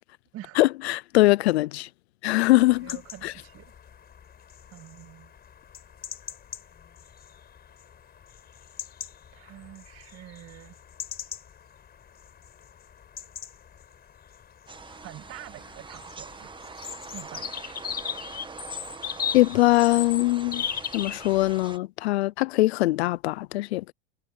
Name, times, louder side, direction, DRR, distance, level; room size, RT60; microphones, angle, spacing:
voice 1, 0.6-1.9 2.2-3.0 3.2-3.3 19.3-20.7 20.9-23.9, left 19 dB, 75° left, 0.7 m, -22 dB
sound 1, 2.6-21.7, left 8 dB, 30° left, 4.7 m, -39 dB
voice 2, 2.8-3.7 4.7-5.3 9.3-10.7 14.9-16.5 17.1-18.1, right 14 dB, 45° right, 2.2 m, -46 dB
sound 2, 14.7-21.8, right 4 dB, 15° right, 1.4 m, -43 dB
hypercardioid pair, 95°, 32 cm